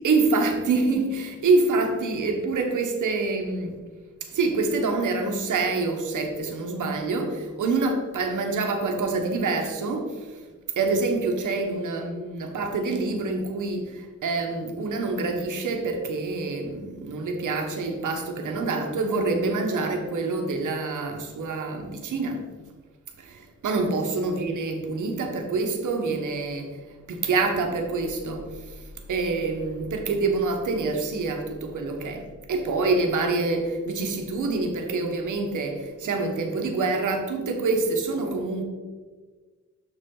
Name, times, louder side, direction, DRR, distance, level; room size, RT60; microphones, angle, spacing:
voice 1, 0.0-3.8 4.2-10.4 10.8-22.5 23.2-26.8 27.1-28.8 29.1-38.6, right 3 dB, 90° right, 4 dB, 1.2 m, -26 dB
6.9 x 6.6 x 3.8 m, 1.4 s
wide cardioid pair, 100°, 30 cm